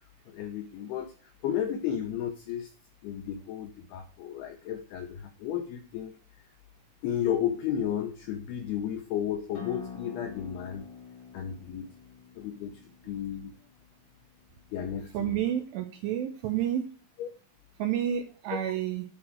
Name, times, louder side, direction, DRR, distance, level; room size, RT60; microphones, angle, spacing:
voice 1, 0.3-2.7 3.0-6.5 7.0-10.9 11.3-11.9 12.4-13.5 14.7-15.4 17.2-17.3 18.6-18.7, left 9 dB, 85° left, 5 dB, 2.3 m, -33 dB
Acoustic guitar, 9.5-14.7, left 6 dB, 55° left, 3.3 m, -46 dB
voice 2, 15.1-16.9 17.8-19.0, right 10 dB, 85° right, 6 dB, 2.6 m, -30 dB
10.5 x 4.5 x 7.6 m, 0.39 s
omnidirectional pair, 5.7 m